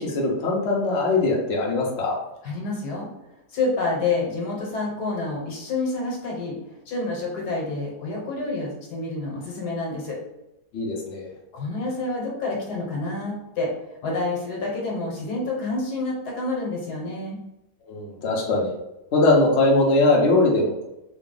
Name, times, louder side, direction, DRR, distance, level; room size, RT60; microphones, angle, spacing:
voice 1, 0.0-2.2 10.7-11.3 17.9-18.7 19.1-20.8, left 2 dB, 50° left, -3 dB, 0.9 m, -21 dB
voice 2, 2.4-3.1 3.5-6.6 6.9-10.2 11.5-13.7 14.0-17.4, left 3 dB, 70° left, -2 dB, 1.6 m, -28 dB
3.8 x 2.3 x 3.8 m, 0.90 s
omnidirectional pair, 1.8 m